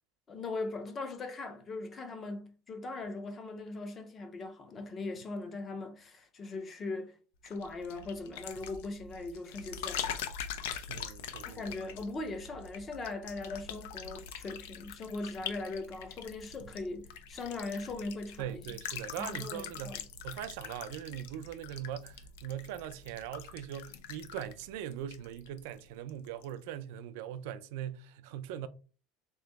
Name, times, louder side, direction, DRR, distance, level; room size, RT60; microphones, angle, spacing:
voice 1, 0.3-7.2 7.4-10.2 11.4-18.8 19.2-20.0, left 3 dB, 25° left, 0.6 m, -40 dB
sound 1, 7.5-25.8 26.1-26.5, left 8 dB, 90° left, 0.5 m, -43 dB
voice 2, 10.9-11.6 18.4-28.7, right 10 dB, 75° right, 0.4 m, -41 dB
3.6 x 2.9 x 3.4 m
cardioid pair, 155°, 0 cm